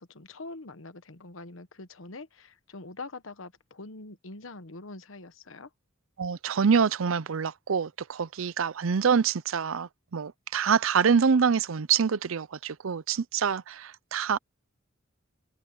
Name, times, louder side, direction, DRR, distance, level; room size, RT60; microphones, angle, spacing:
voice 1, 0.0-5.7, left 3 dB, 75° left, 1.2 m, -44 dB
voice 2, 6.2-14.4, right 6 dB, 85° right, 0.6 m, -26 dB
head